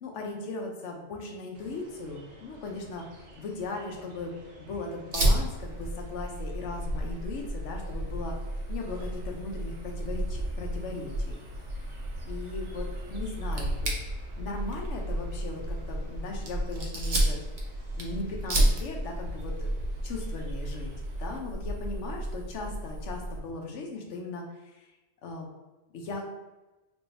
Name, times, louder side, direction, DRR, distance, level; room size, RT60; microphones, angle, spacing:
voice 1, 0.0-3.1 3.4-4.3 4.6-8.4 8.7-11.4 12.3-13.9 14.4-17.4 17.9-19.7 20.0-20.9 21.2-24.9 25.2-25.5 25.9-26.3, left 3 dB, 85° left, 1 dB, 1.0 m, -38 dB
sound 1, 1.5-21.4, right 1 dB, 85° right, 1.1 m, -44 dB
Fire, 5.1-23.4, right 1 dB, 50° right, 0.7 m, -32 dB
3.6 x 2.6 x 2.6 m, 1.1 s
omnidirectional pair, 1.2 m